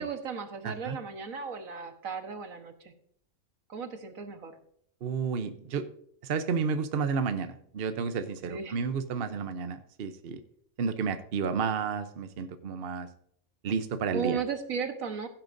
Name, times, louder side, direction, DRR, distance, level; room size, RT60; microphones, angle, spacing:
voice 1, 0.0-2.9 3.7-4.6 8.5-8.8 14.1-15.3, right 6 dB, 75° right, 7 dB, 1.6 m, -35 dB
voice 2, 0.6-1.0 5.0-5.8 6.2-10.4 10.8-13.1 13.6-14.4, right 5 dB, 50° right, 10 dB, 0.9 m, -31 dB
15.5 x 8.8 x 2.6 m, 0.67 s
omnidirectional pair, 1.4 m